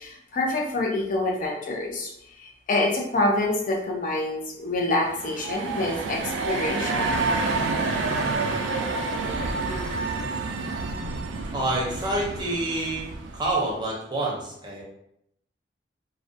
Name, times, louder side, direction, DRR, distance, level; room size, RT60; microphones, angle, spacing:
voice 1, 0.0-2.1 2.4-6.2 6.4-7.1, left 2 dB, 45° left, -1 dB, 0.5 m, -26 dB
sound 1, 5.0-13.7, right 3 dB, 85° right, 0.3 m, -28 dB
voice 2, 11.5-13.1 13.3-14.8, right 2 dB, 25° right, -3 dB, 0.6 m, -27 dB
2.3 x 2.1 x 2.6 m, 0.76 s
head